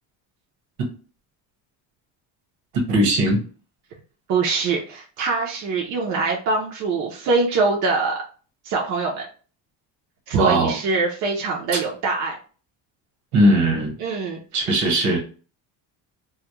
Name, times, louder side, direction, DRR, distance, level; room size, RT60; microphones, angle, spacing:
voice 1, 2.7-3.4 10.3-10.8 11.7-11.8 13.3-14.0 14.5-15.2, right 1 dB, 75° right, 1.1 m, -19 dB
voice 2, 4.3-8.2 8.6-9.3 10.3-12.4 14.0-14.4, right 4 dB, 45° right, 0.5 m, -23 dB
2.3 x 2.0 x 2.9 m
cardioid pair, 170°, 41 cm